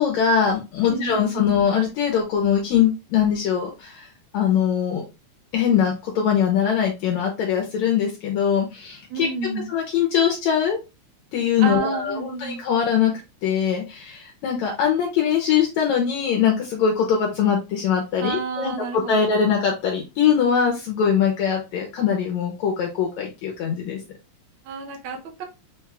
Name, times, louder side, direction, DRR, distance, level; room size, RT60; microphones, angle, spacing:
voice 1, 0.0-4.1 4.3-5.0 5.5-9.3 9.7-10.8 11.3-13.1 13.4-24.0, left 8 dB, 75° left, 1 dB, 2.0 m, -22 dB
voice 2, 0.9-1.6 9.1-9.7 11.6-12.6 18.2-19.3 24.6-25.4, right 4 dB, 65° right, 2 dB, 1.3 m, -30 dB
5.4 x 2.3 x 3.3 m, 0.27 s
omnidirectional pair, 3.5 m